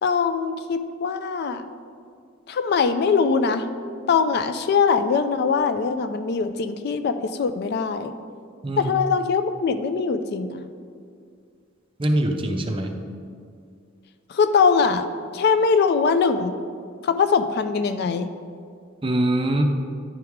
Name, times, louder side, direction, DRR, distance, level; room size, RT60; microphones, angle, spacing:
voice 1, 0.0-1.7 2.5-3.7 4.1-8.1 8.8-10.7 14.3-15.1 15.3-16.5 17.0-18.3, left 5 dB, 55° left, 10 dB, 0.3 m, -22 dB
voice 2, 12.0-13.0 19.0-19.6, right 1 dB, 25° right, 4 dB, 0.5 m, -23 dB
10.0 x 4.6 x 3.6 m, 2.2 s
head